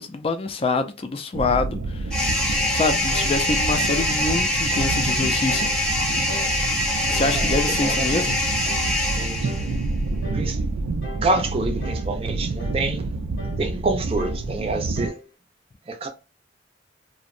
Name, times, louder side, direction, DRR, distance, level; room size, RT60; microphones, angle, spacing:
voice 1, 0.0-2.2 2.7-5.7 7.1-8.4, left 3 dB, 30° left, 0.3 m, -25 dB
sound 1, 1.3-15.1, right 3 dB, 90° right, 0.4 m, -28 dB
sound 2, 2.1-9.8, left 1 dB, 5° left, 0.7 m, -24 dB
sound 3, 3.1-3.4 3.9-4.2 4.7-5.0 5.5-5.8 6.3-6.6 7.1-7.4 7.9-8.2 8.6-8.9 9.4-9.7 10.2-10.5 11.0-11.3 11.8-12.1 12.6-12.9 13.4-13.7 14.2-14.5 15.0-15.3, left 2 dB, 90° left, 0.8 m, -39 dB
voice 2, 7.3-8.5 9.1-9.5 10.3-10.6 11.2-13.1 13.4-15.2 15.9-16.1, right 2 dB, 30° right, 0.5 m, -27 dB
2.6 x 2.1 x 2.4 m
head